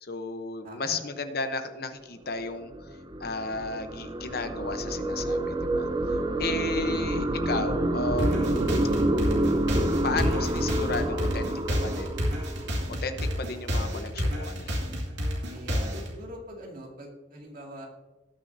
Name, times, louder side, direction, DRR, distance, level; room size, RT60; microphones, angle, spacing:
voice 1, 0.0-2.9 3.2-5.9 6.4-8.6 10.0-12.2 13.0-14.8, left 3 dB, 50° left, 8 dB, 0.8 m, -33 dB
voice 2, 0.6-1.0 15.5-17.9, equal, 45° right, -1 dB, 2.2 m, -43 dB
sound 1, 2.5-13.1, right 1 dB, 20° right, 0.5 m, -28 dB
sound 2, 8.2-16.1, equal, 65° right, 2.4 m, -29 dB
19.0 x 6.3 x 2.7 m, 1.2 s
head